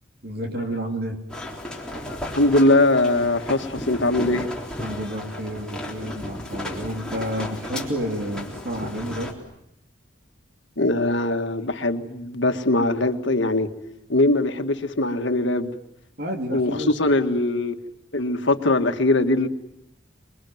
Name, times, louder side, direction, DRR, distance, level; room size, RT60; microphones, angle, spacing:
voice 1, 0.2-1.2 4.8-9.4 16.2-16.9, equal, 50° right, 3.2 m, -30 dB
sound 1, 1.3-9.3, left 1 dB, 5° left, 3.6 m, -34 dB
voice 2, 2.1-4.5 10.8-13.7 14.1-15.7 16.5-17.8 18.1-19.5, left 2 dB, 60° left, 1.8 m, -21 dB
27.5 x 22.0 x 9.4 m
head